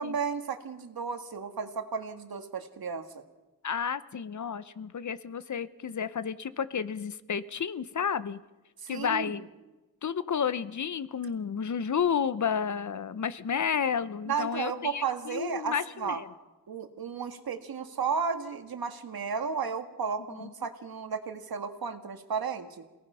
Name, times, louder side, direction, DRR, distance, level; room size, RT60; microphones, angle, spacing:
voice 1, 0.0-3.2 8.8-9.3 14.3-16.2 16.7-22.8, right 6 dB, 75° right, 7 dB, 1.9 m, -33 dB
voice 2, 3.6-8.4 8.9-9.5 10.0-16.3 20.4-20.5, left 7 dB, 50° left, 15 dB, 0.8 m, -31 dB
27.5 x 18.0 x 5.6 m, 1.1 s
wide cardioid pair, 95°, 37 cm